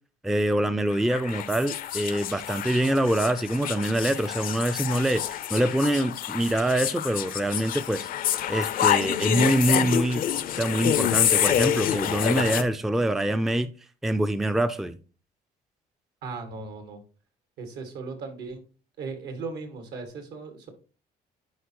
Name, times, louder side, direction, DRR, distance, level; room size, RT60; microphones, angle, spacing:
voice 1, 0.2-8.1 8.5-10.2 10.6-13.7 14.0-15.0, right 1 dB, ahead, 0.4 m, -25 dB
sound 1, 0.9-12.6, left 11 dB, 55° left, 0.5 m, -27 dB
voice 2, 16.2-17.0 17.6-18.6 19.0-20.7, right 4 dB, 80° right, 1.8 m, -37 dB
10.5 x 4.4 x 2.9 m
cardioid pair, 110°, 17 cm